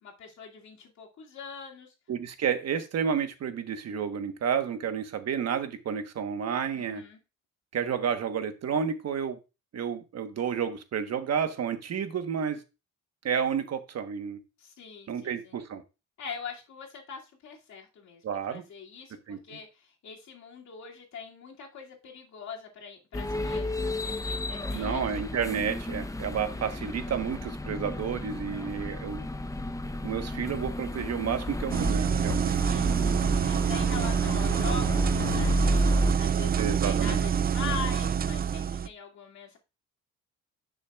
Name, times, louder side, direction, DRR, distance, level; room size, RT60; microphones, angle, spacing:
voice 1, 0.0-1.9 6.7-7.2 14.6-15.5 16.2-25.0 32.4-35.8 36.2-39.6, left 5 dB, 65° left, 2.5 m, -42 dB
voice 2, 2.1-7.0 7.7-9.4 9.7-12.6 13.2-14.4 15.1-15.8 18.2-18.6 19.3-19.4 24.7-29.3 30.0-32.6 36.6-37.2, right 7 dB, 55° right, 1.2 m, -31 dB
sound 1, 23.1-36.1, left 2 dB, 10° left, 0.7 m, -32 dB
sound 2, 31.7-38.9, right 7 dB, 30° right, 0.4 m, -26 dB
9.9 x 6.2 x 2.4 m
cardioid pair, 90°, 30 cm